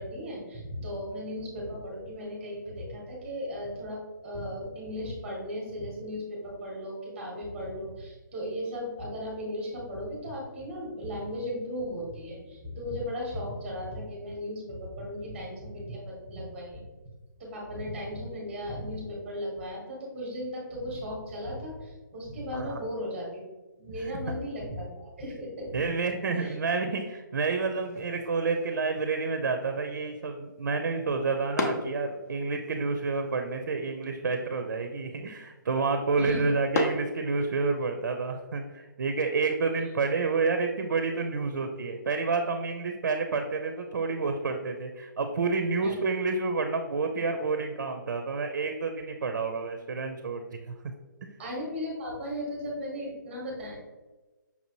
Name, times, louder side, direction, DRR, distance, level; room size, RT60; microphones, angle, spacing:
voice 1, 0.0-16.8 17.4-23.4 23.8-25.7 26.3-26.5 36.2-36.5 45.8-45.9 51.4-53.8, equal, 5° right, -3 dB, 0.8 m, -36 dB
voice 2, 25.7-50.7 51.2-51.3, right 4 dB, 60° right, 6 dB, 0.5 m, -29 dB
sound 1, 27.8-37.9, left 2 dB, 50° left, 0.6 m, -38 dB
5.7 x 2.7 x 2.9 m, 1.2 s
hypercardioid pair, 170°, 11 cm